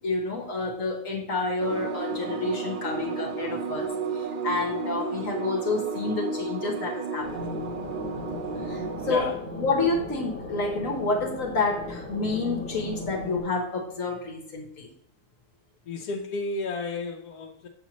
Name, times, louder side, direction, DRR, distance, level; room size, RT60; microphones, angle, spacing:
voice 1, 0.0-7.5 8.6-9.3 9.6-14.9, left 3 dB, 60° left, 2 dB, 1.4 m, -29 dB
sound 1, 1.6-9.2, right 4 dB, 90° right, 0.4 m, -33 dB
sound 2, 7.2-13.4, left 2 dB, 45° left, 1.5 m, -37 dB
voice 2, 9.0-9.4 15.9-17.7, left 3 dB, 85° left, 0 dB, 1.2 m, -32 dB
7.4 x 7.2 x 3.0 m, 0.75 s
omnidirectional pair, 1.6 m